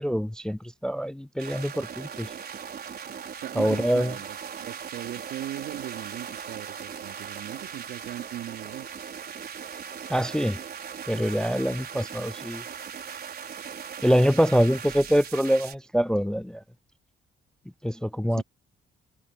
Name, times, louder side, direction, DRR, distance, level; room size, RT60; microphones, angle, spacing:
voice 1, 0.0-2.3 3.6-4.1 10.1-10.6 11.1-12.6 14.0-16.6 17.8-18.4, equal, 5° left, 0.3 m, -24 dB
sound 1, 1.4-15.7, right 7 dB, 50° right, 5.1 m, -39 dB
voice 2, 3.4-9.3 18.3-18.4, right 13 dB, 85° right, 3.1 m, -39 dB
cardioid pair, 90°, 20 cm